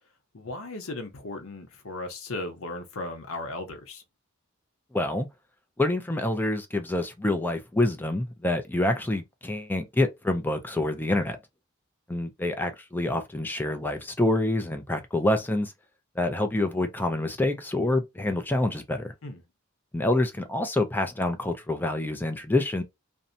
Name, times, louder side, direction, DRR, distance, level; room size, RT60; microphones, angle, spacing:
voice 1, 0.3-4.0 19.2-19.4, left 2 dB, 80° left, 0.7 m, -36 dB
voice 2, 4.9-5.3 5.8-11.4 12.1-15.7 16.2-19.1 19.9-22.8, left 1 dB, 10° left, 0.4 m, -27 dB
2.6 x 2.1 x 2.6 m
head